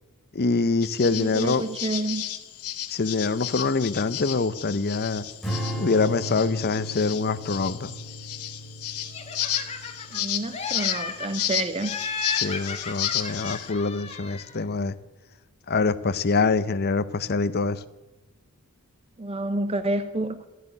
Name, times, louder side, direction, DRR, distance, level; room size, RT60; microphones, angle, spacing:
voice 1, 0.3-1.6 2.9-5.2 5.8-7.9 12.3-14.9 15.7-17.8, left 4 dB, 45° left, 14 dB, 0.7 m, -25 dB
sound 1, 0.8-13.7, left 11 dB, 85° left, 1.1 m, -33 dB
voice 2, 1.0-2.2 10.1-11.9 19.2-20.5, right 2 dB, 25° right, 10 dB, 0.6 m, -29 dB
Strum, 5.4-11.8, equal, ahead, 2.6 m, -36 dB
Laughter, 9.1-10.2 10.5-11.5 11.8-14.6, left 4 dB, 30° left, 1.7 m, -34 dB
14.0 x 8.0 x 9.9 m, 1.1 s
head